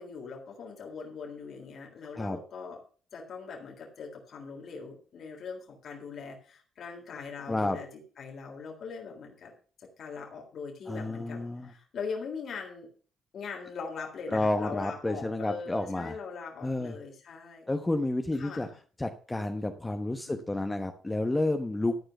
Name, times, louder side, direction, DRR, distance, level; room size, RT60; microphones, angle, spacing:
voice 1, 0.0-2.8 3.1-7.9 8.2-9.5 9.8-12.9 13.3-17.7 18.4-18.8 20.3-20.6, left 5 dB, 60° left, 0 dB, 3.7 m, -41 dB
voice 2, 7.5-7.8 10.9-11.7 14.3-16.1 16.6-17.0 17.7-18.7 19.0-22.0, left 2 dB, 15° left, 6 dB, 1.0 m, -30 dB
13.5 x 4.8 x 7.7 m, 0.41 s
cardioid pair, 95°, 0 cm